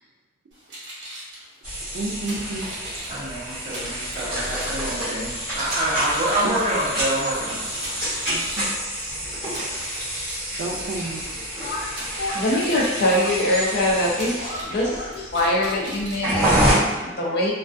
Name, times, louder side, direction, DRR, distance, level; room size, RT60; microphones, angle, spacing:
sound 1, 0.5-16.9, right 1 dB, 70° right, 0.8 m, -40 dB
sound 2, 1.6-16.7, right 1 dB, 5° right, 1.2 m, -28 dB
voice 1, 1.9-2.7 6.4-6.5 8.3-8.7 10.6-11.5, right 2 dB, 90° right, -2 dB, 0.4 m, -31 dB
voice 2, 3.1-7.6, right 1 dB, 35° right, -13 dB, 0.6 m, -26 dB
voice 3, 11.6-17.5, left 1 dB, 55° left, -3 dB, 0.5 m, -23 dB
2.2 x 2.2 x 2.5 m, 1.2 s
head